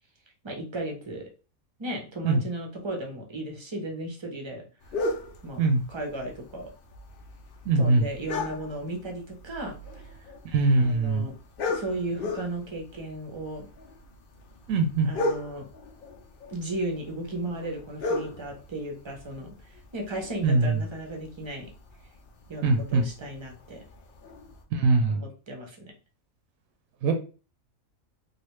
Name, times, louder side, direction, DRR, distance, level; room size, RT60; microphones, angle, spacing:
voice 1, 0.4-1.2 1.8-4.7 5.4-5.6 5.9-6.7 7.8-10.1 10.8-11.3 11.7-13.7 15.0-15.7 16.5-19.5 19.9-21.7 22.5-23.8 25.1-25.9, right 1 dB, 30° right, 1 dB, 0.6 m, -35 dB
sound 1, 4.8-24.6, left 2 dB, 55° left, 0.6 m, -38 dB
voice 2, 7.7-8.0 10.5-11.3 14.7-15.1 20.4-20.8 22.6-23.1 24.7-25.2 27.0-27.1, right 3 dB, 80° right, 4 dB, 1.0 m, -22 dB
3.2 x 2.4 x 3.0 m, 0.35 s
omnidirectional pair, 1.4 m